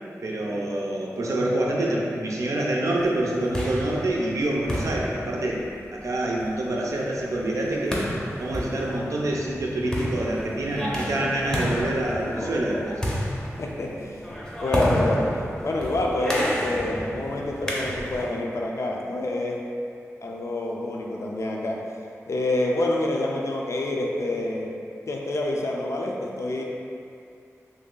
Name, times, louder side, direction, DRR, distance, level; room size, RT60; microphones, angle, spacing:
voice 1, 0.2-5.6 5.9-8.1 8.4-13.0, right 1 dB, 75° right, -3 dB, 0.5 m, -26 dB
sound 1, 3.2-18.4, equal, 10° left, 0.6 m, -31 dB
voice 2, 13.6-14.2 14.6-15.3 15.6-19.6 20.2-21.8 22.3-24.7 25.1-26.6, left 1 dB, 65° left, -1 dB, 0.4 m, -27 dB
3.1 x 2.7 x 3.8 m, 2.5 s
wide cardioid pair, 95°, 5 cm